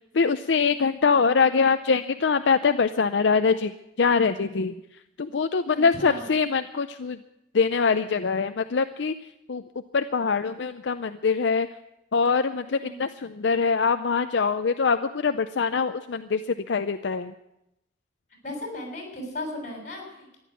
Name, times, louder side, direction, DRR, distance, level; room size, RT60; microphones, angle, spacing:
voice 1, 0.1-3.7 4.0-4.7 5.2-7.2 7.5-9.1 9.5-9.6 9.9-11.7 12.1-17.3, left 5 dB, 75° left, 9 dB, 0.6 m, -23 dB
voice 2, 5.7-6.2 12.7-13.0 18.4-20.4, left 1 dB, 45° left, 1 dB, 6.6 m, -36 dB
14.5 x 11.0 x 8.3 m, 0.87 s
head